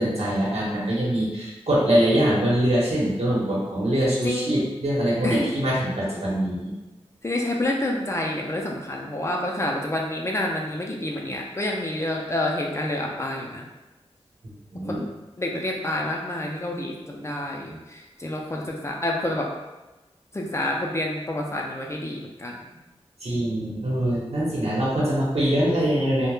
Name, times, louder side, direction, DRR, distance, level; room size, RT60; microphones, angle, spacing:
voice 1, 0.0-6.7 14.7-15.0 23.2-26.3, right 1 dB, 75° right, -6 dB, 0.9 m, -23 dB
voice 2, 4.2-4.5 5.2-5.5 7.2-13.7 14.9-15.1 15.4-19.5 20.3-22.6, left 1 dB, 25° left, 0 dB, 0.4 m, -28 dB
2.2 x 2.1 x 3.1 m, 1.1 s
wide cardioid pair, 85°, 11 cm